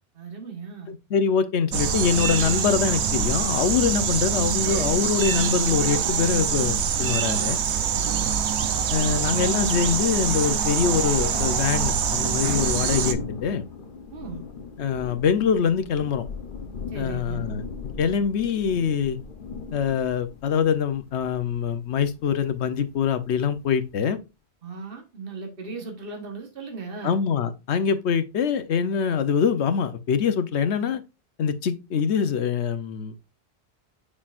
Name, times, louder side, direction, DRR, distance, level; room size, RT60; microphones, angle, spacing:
voice 1, 0.1-0.9 7.9-8.3 14.1-14.5 16.9-17.5 24.6-27.2, right 4 dB, 55° right, 1.6 m, -37 dB
voice 2, 0.9-7.6 8.9-13.6 14.8-16.2 16.9-17.7 18.0-19.2 19.7-24.2 27.0-31.0 31.4-33.2, left 7 dB, 80° left, 1.1 m, -24 dB
sound 1, 1.7-13.1, right 7 dB, 80° right, 1.0 m, -24 dB
Thunder, 11.2-24.0, left 5 dB, 50° left, 1.0 m, -39 dB
7.2 x 6.8 x 2.5 m
omnidirectional pair, 1.1 m